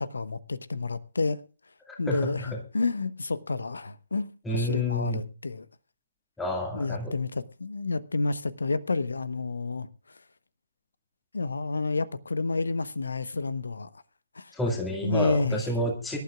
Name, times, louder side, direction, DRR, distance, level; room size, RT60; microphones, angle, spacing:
voice 1, 0.0-1.4 2.0-5.7 6.7-10.2 11.3-14.0 14.3-14.5 15.0-15.6, left 3 dB, 65° left, 1.0 m, -30 dB
voice 2, 1.9-2.6 4.4-5.2 6.4-7.1 14.5-16.2, equal, 5° left, 2.0 m, -29 dB
24.5 x 12.0 x 2.4 m
figure-of-eight pair, 140°, 0 cm